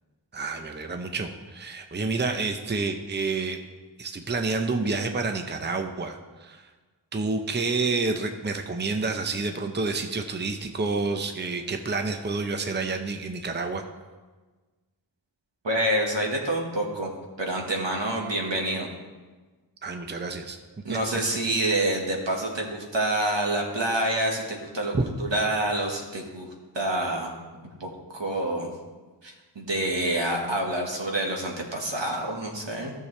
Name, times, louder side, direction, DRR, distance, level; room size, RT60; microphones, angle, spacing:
voice 1, 0.3-3.6 4.0-6.7 7.1-13.8 19.8-20.6 20.9-21.0 24.9-25.1, right 3 dB, 25° right, 5 dB, 0.7 m, -29 dB
voice 2, 15.6-17.1 17.4-18.9 20.8-24.9 25.2-26.5 26.7-28.7 29.2-32.9, right 1 dB, 70° right, 0 dB, 1.6 m, -27 dB
13.5 x 6.7 x 3.3 m, 1.3 s
wide cardioid pair, 50°, 45 cm